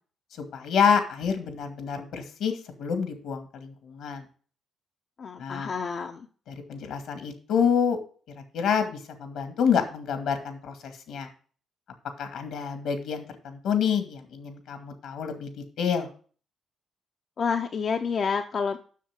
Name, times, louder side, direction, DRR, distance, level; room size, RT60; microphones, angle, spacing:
voice 1, 0.4-4.2 5.4-5.7 6.5-8.0 8.5-11.3 12.2-16.1, left 7 dB, 80° left, 7 dB, 2.2 m, -28 dB
voice 2, 5.2-6.3 17.4-18.8, left 5 dB, 50° left, 5 dB, 0.7 m, -29 dB
7.5 x 6.4 x 7.5 m, 0.42 s
cardioid pair, 90°, 0 cm